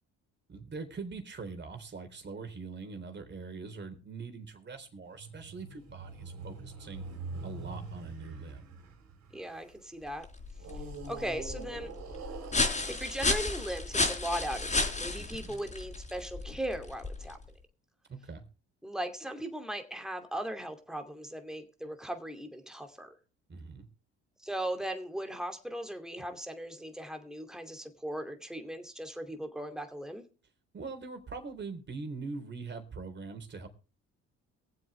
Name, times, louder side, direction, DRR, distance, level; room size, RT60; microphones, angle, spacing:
voice 1, 0.5-7.0 7.4-8.6 15.1-15.6 18.1-18.4 23.5-23.9 30.7-33.7, right 4 dB, 35° right, 3.8 m, -42 dB
sound 1, 5.1-9.8 10.6-14.0, right 4 dB, 60° right, 3.9 m, -44 dB
voice 2, 9.3-10.3 11.1-11.9 12.9-17.4 18.8-23.1 24.4-30.2, right 1 dB, ahead, 2.6 m, -38 dB
sound 2, 10.1-17.5, left 3 dB, 25° left, 4.1 m, -33 dB
23.0 x 7.8 x 3.3 m
supercardioid pair, 80°, 30 cm